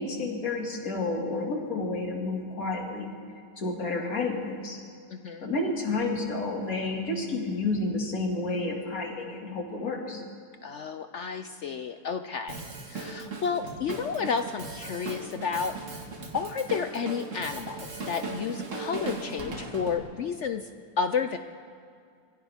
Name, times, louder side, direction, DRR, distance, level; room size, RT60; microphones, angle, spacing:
voice 1, 0.0-3.1 3.6-4.8 5.4-10.2, left 3 dB, 55° left, 0 dB, 2.6 m, -30 dB
voice 2, 5.1-5.5 10.6-12.6 12.9-16.0 16.3-20.7 21.0-21.4, left 6 dB, 70° left, 8 dB, 0.6 m, -31 dB
Drum kit, 12.5-20.0, right 3 dB, 50° right, 2.0 m, -38 dB
25.0 x 16.5 x 3.5 m, 2.3 s
omnidirectional pair, 1.8 m